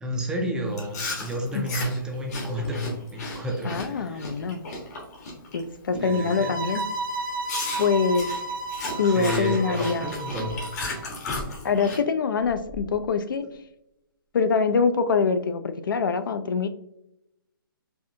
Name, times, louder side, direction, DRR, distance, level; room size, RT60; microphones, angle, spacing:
voice 1, 0.0-4.3 6.0-6.6 9.0-11.0, equal, 5° right, 1 dB, 0.4 m, -31 dB
Chewing mastication, 0.7-5.6 5.9-6.3 6.7-6.9 7.5-12.0, left 2 dB, 45° left, 1.3 m, -35 dB
voice 2, 3.6-4.6 5.5-6.9 7.8-8.3 9.0-10.1 11.6-13.5 14.3-16.7, left 5 dB, 65° left, 10 dB, 0.4 m, -24 dB
sound 1, 6.0-11.0, right 3 dB, 65° right, 0.8 m, -33 dB
sound 2, 11.2-11.9 12.4-13.2 13.5-13.6, left 2 dB, 20° left, 0.7 m, -38 dB
4.6 x 2.5 x 2.6 m, 0.82 s
figure-of-eight pair, 140°, 12 cm